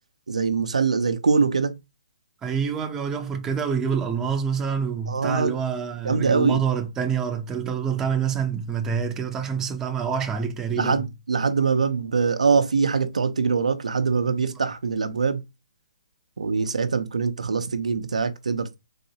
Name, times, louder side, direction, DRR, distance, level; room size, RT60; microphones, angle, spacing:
voice 1, 0.3-1.7 5.1-5.5 6.0-6.6 10.7-15.4 16.4-18.7, right 5 dB, 85° right, 0.6 m, -23 dB
voice 2, 2.4-11.0 14.3-14.4, right 7 dB, 15° right, 0.6 m, -27 dB
4.0 x 2.6 x 2.8 m
hypercardioid pair, 145°, 4 cm